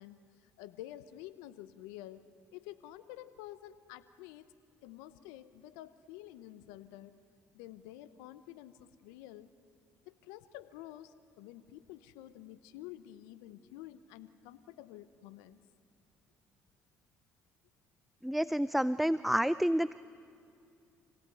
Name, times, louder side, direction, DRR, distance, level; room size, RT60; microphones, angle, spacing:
voice 1, 0.0-2.2 2.5-4.5 4.8-7.1 7.5-9.5 10.1-15.6, left 14 dB, 85° left, 13 dB, 0.9 m, -50 dB
voice 2, 18.2-19.9, equal, ahead, 17 dB, 0.5 m, -29 dB
26.5 x 17.5 x 9.3 m, 2.5 s
supercardioid pair, 65°, 6 cm